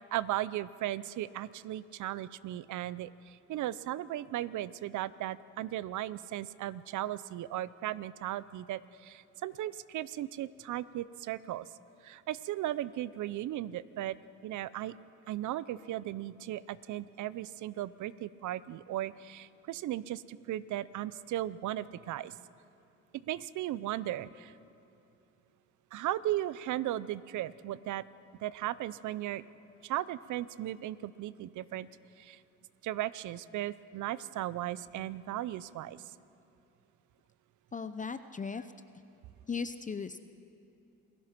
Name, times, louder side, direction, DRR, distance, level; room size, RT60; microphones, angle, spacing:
voice 1, 0.0-11.7 12.0-14.2 14.4-14.9 15.3-22.3 23.3-24.5 25.9-28.0 28.4-29.4 29.8-31.9 32.2-32.4 32.8-36.0, right 13 dB, 75° right, 18 dB, 0.6 m, -36 dB
voice 2, 37.7-38.7 39.5-40.2, left 5 dB, 25° left, 11 dB, 0.7 m, -37 dB
27.5 x 16.5 x 5.9 m, 2.9 s
cardioid pair, 90°, 30 cm